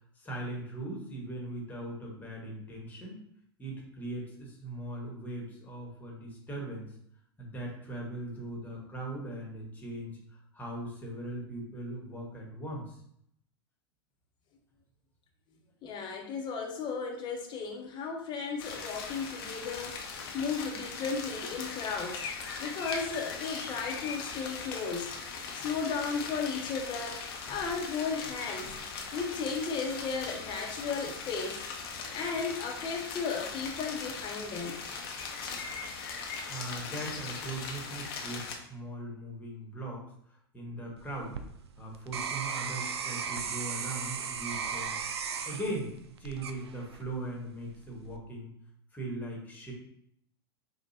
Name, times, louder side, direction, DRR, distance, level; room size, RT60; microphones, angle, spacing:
voice 1, 0.2-3.2 3.6-6.9 7.4-13.0 36.5-41.4 41.8-45.0 45.4-45.9 46.2-48.5 48.9-49.7, right 1 dB, 10° left, -2 dB, 1.4 m, -39 dB
voice 2, 15.8-22.2 22.6-25.1 25.5-28.8 29.1-31.6 32.1-34.9, left 5 dB, 35° left, 2 dB, 0.9 m, -35 dB
sound 1, 18.6-38.6, left 5 dB, 65° left, 0.8 m, -40 dB
sound 2, 41.0-47.2 47.7-48.2, right 6 dB, 80° right, 0.4 m, -36 dB
5.2 x 2.4 x 2.7 m, 0.71 s
hypercardioid pair, 95°, 14 cm